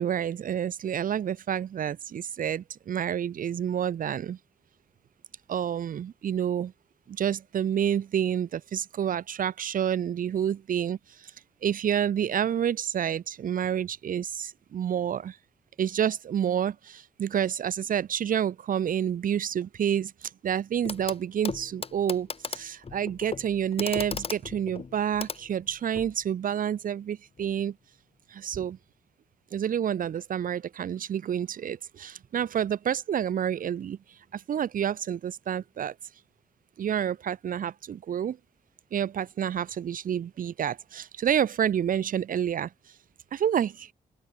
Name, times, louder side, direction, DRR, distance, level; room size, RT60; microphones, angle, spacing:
voice 1, 0.0-4.4 5.5-6.7 7.2-11.0 11.6-15.4 15.8-20.1 20.4-27.7 28.3-28.8 29.5-34.0 34.3-35.9 36.8-38.4 38.9-42.7 43.3-43.9, right 9 dB, 75° right, 2.0 m, -29 dB
Clock, 20.9-21.2 21.4-26.1 27.4-27.5, left 5 dB, 45° left, 5.7 m, -37 dB
open air
cardioid pair, 110°, 14 cm